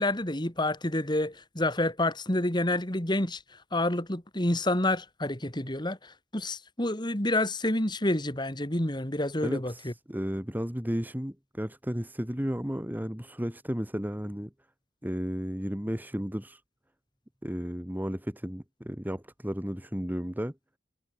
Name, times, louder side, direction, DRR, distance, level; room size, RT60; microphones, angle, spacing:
voice 1, 0.0-3.4 3.7-9.9, left 1 dB, 25° left, 2.8 m, -28 dB
voice 2, 9.4-14.5 15.0-16.6 17.4-20.5, equal, 10° right, 1.6 m, -33 dB
head